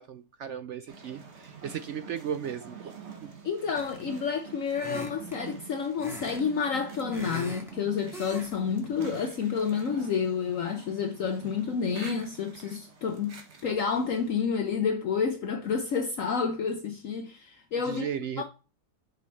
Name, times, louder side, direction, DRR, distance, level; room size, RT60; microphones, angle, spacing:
voice 1, 0.0-3.0 3.2-3.3 17.8-18.4, right 8 dB, 75° right, 0.6 m, -36 dB
sound 1, 0.9-14.4, right 6 dB, 45° right, 1.5 m, -46 dB
voice 2, 3.4-18.1 18.4-18.5, left 6 dB, 60° left, 1.1 m, -29 dB
sound 2, 3.7-4.2 4.7-5.4 6.0-6.4 6.7-7.7 8.1-8.5 8.8-9.1, equal, ahead, 1.8 m, -41 dB
6.4 x 5.6 x 4.0 m
omnidirectional pair, 1.7 m